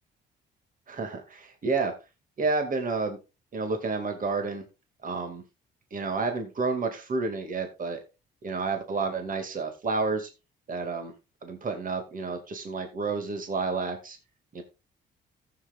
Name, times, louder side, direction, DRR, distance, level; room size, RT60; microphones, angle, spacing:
voice 1, 0.9-1.9 2.4-3.2 3.5-4.6 5.0-5.4 5.9-8.0 8.4-10.3 10.7-11.1 11.4-14.2 14.5-14.6, right 4 dB, 45° right, 5 dB, 2.3 m, -30 dB
14.5 x 7.8 x 2.4 m, 0.27 s
cardioid pair, 90°, 20 cm